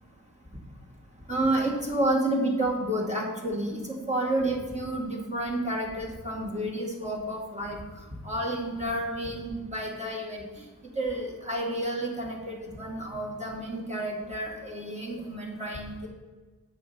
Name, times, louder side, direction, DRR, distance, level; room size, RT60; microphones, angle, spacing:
voice 1, 1.3-7.8 8.2-10.4 11.0-16.1, right 1 dB, 20° right, -2 dB, 2.3 m, -30 dB
8.1 x 5.5 x 5.6 m, 1.3 s
wide cardioid pair, 70°, 36 cm